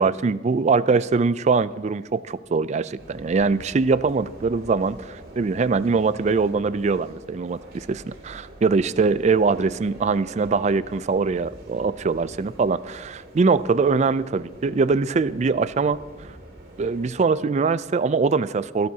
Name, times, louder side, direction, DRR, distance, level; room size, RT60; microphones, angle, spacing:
voice 1, 0.0-16.4 16.8-18.9, right 4 dB, 40° right, 16 dB, 0.4 m, -22 dB
sound 1, 3.0-17.1, right 1 dB, 55° right, 2.5 m, -45 dB
23.5 x 12.0 x 2.8 m, 1.2 s
head